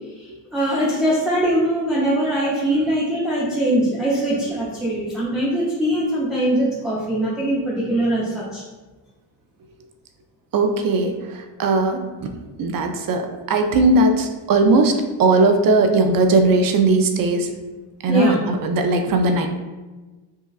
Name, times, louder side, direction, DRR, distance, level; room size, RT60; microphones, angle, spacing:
voice 1, 0.2-8.6 18.1-18.4, right 1 dB, ahead, -8 dB, 0.6 m, -22 dB
voice 2, 10.5-12.0 12.6-17.5 18.0-19.5, right 3 dB, 50° right, 5 dB, 0.5 m, -18 dB
5.5 x 2.3 x 2.3 m, 1.2 s
cardioid pair, 125°, 46 cm